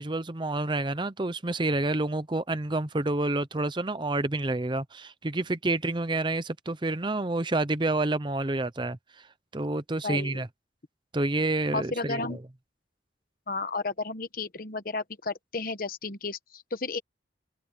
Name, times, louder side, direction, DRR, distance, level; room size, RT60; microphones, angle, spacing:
voice 1, 0.0-9.3 9.5-10.5 11.1-12.4, right 2 dB, 25° right, 0.7 m, -29 dB
voice 2, 10.0-10.4 11.7-12.4 13.5-17.0, left 3 dB, 50° left, 1.2 m, -33 dB
head